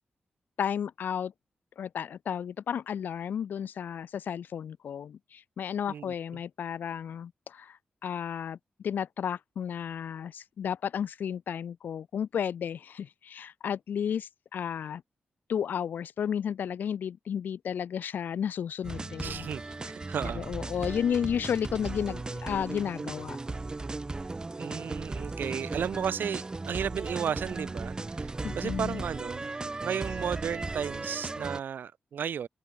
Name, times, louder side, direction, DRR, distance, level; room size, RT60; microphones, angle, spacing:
voice 1, 0.6-1.3 1.8-8.6 8.8-15.0 15.5-19.5 20.2-23.4 28.4-29.0, left 8 dB, 70° left, 0.3 m, -33 dB
sound 1, 18.8-31.6, right 3 dB, 25° right, 0.6 m, -36 dB
voice 2, 19.2-20.5 24.6-29.5 29.8-32.5, right 8 dB, 75° right, 1.3 m, -34 dB
open air
wide cardioid pair, 100°, 3 cm